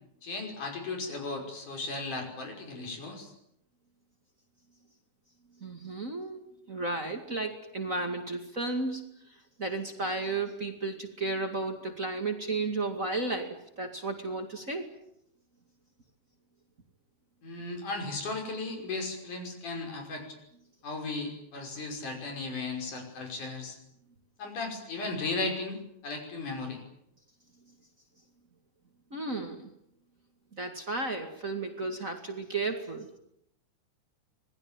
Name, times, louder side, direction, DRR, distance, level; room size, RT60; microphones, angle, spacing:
voice 1, 0.2-3.3 17.4-20.4 20.8-23.8 24.4-26.8, left 3 dB, 80° left, 3 dB, 7.3 m, -36 dB
voice 2, 5.6-6.4 6.7-9.0 9.6-14.9 29.1-29.7 30.5-33.2, right 3 dB, 30° right, 4 dB, 2.3 m, -33 dB
26.5 x 20.0 x 9.1 m, 0.73 s
omnidirectional pair, 3.5 m